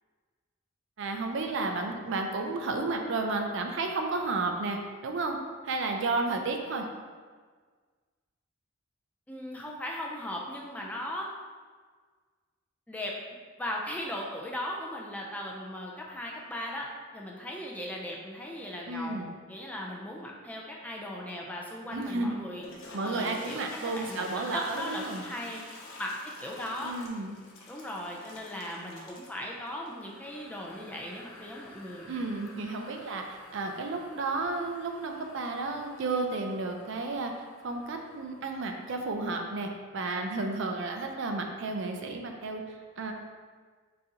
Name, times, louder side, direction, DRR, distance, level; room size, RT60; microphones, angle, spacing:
voice 1, 1.0-5.4 5.6-6.9 18.9-19.3 21.9-22.3 22.9-25.2 26.8-27.4 32.1-37.3 37.6-42.6 43.0-43.1, right 3 dB, 60° right, 3 dB, 0.4 m, -32 dB
voice 2, 9.3-11.3 12.9-13.1 13.6-16.9 17.1-19.2 19.5-22.7 23.0-25.6 26.0-26.1 26.4-27.0 27.7-32.1, left 1 dB, 5° left, -2 dB, 0.4 m, -38 dB
Toilet flush, 22.5-39.2, left 2 dB, 70° left, 0.7 m, -50 dB
3.9 x 2.8 x 3.7 m, 1.5 s
head